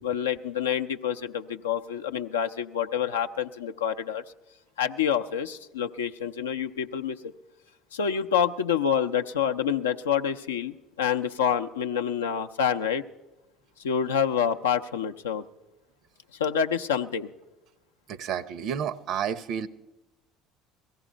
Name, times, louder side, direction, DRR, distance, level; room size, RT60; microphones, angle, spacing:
voice 1, 0.0-4.2 4.8-7.3 7.9-13.0 13.8-15.4 16.4-17.3, left 8 dB, 85° left, 6 dB, 0.5 m, -27 dB
voice 2, 18.1-19.7, right 8 dB, 60° right, 18 dB, 0.6 m, -30 dB
17.0 x 14.5 x 5.0 m, 1.1 s
hypercardioid pair, 65°, 0 cm